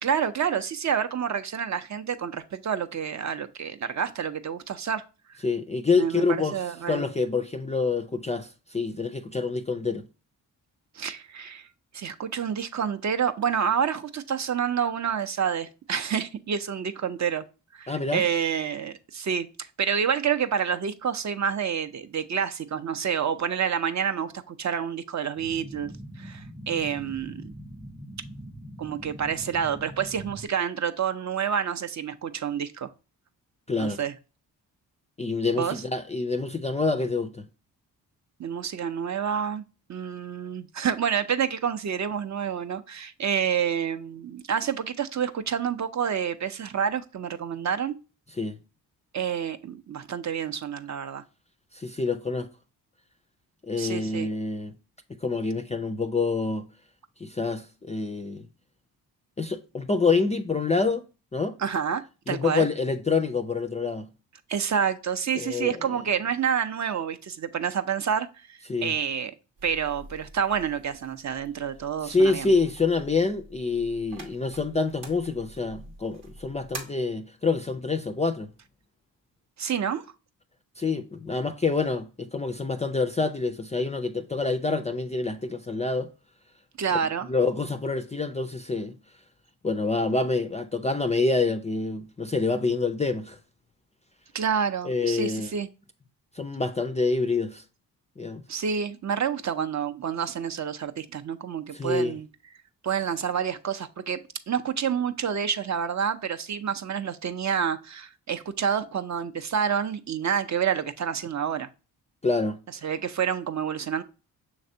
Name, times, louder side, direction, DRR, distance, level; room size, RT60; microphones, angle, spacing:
voice 1, 0.0-5.0 6.0-6.3 6.5-7.0 10.9-11.7 11.9-17.4 17.7-19.5 19.8-25.9 26.2-27.5 28.8-32.9 33.8-34.1 35.5-35.8 38.4-39.6 39.9-48.0 49.1-51.2 53.8-54.3 61.6-62.7 64.5-69.3 69.6-72.5 79.6-80.0 86.8-87.3 94.3-95.7 98.5-102.3 102.8-104.2 104.5-111.7 112.8-114.0, right 7 dB, 45° right, 0.5 m, -28 dB
voice 2, 5.4-6.6 6.9-10.1 17.9-18.3 33.7-34.0 35.2-37.5 48.4-48.6 51.7-52.5 53.6-54.7 55.1-56.6 57.2-58.5 59.4-61.0 61.3-61.6 62.3-64.1 65.3-65.8 68.7-69.0 72.0-78.5 80.8-86.1 86.9-87.0 87.3-89.0 89.6-93.4 94.8-95.5 96.3-97.6 98.2-98.4 101.7-102.2 112.2-112.9, left 3 dB, 20° left, 0.4 m, -27 dB
sound 1, 25.4-30.5, equal, 10° right, 0.7 m, -42 dB
sound 2, 69.6-76.8, right 2 dB, 90° right, 1.0 m, -46 dB
5.9 x 3.2 x 2.6 m
supercardioid pair, 45°, 42 cm